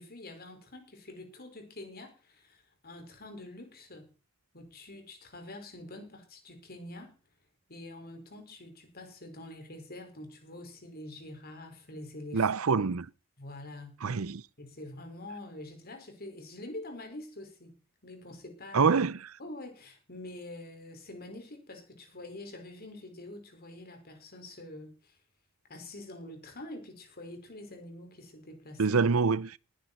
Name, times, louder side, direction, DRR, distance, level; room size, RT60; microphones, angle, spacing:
voice 1, 0.0-4.1 4.5-7.2 7.7-12.5 13.4-14.0 14.6-17.7 18.0-18.9 19.4-25.2 25.7-29.0, left 1 dB, 45° left, 5.2 m, -46 dB
voice 2, 12.3-13.1 14.0-14.4 18.7-19.2 28.8-29.6, right 5 dB, 90° right, 0.7 m, -25 dB
19.5 x 10.5 x 4.4 m
head